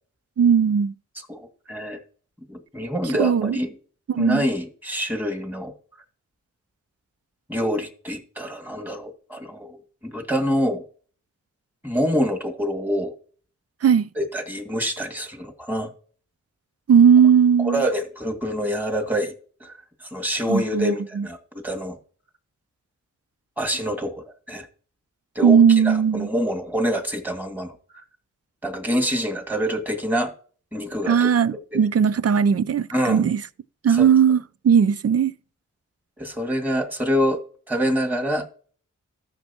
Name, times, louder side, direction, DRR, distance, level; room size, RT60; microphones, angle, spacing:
voice 1, 0.4-0.9 3.2-3.6 4.1-4.4 13.8-14.1 16.9-17.8 20.5-21.3 25.4-26.3 31.1-33.4 33.8-35.3, right 7 dB, 50° right, 0.5 m, -18 dB
voice 2, 1.3-2.0 2.5-3.8 4.2-5.7 7.5-10.8 11.8-13.1 14.2-15.9 17.6-19.3 19.6-19.7 20.0-22.0 23.6-24.7 25.4-27.8 28.6-30.3 30.7-31.3 32.9-33.2 33.9-34.1 36.2-37.4 37.7-38.5, equal, 5° right, 2.1 m, -26 dB
14.0 x 6.5 x 2.9 m
cardioid pair, 60°, 33 cm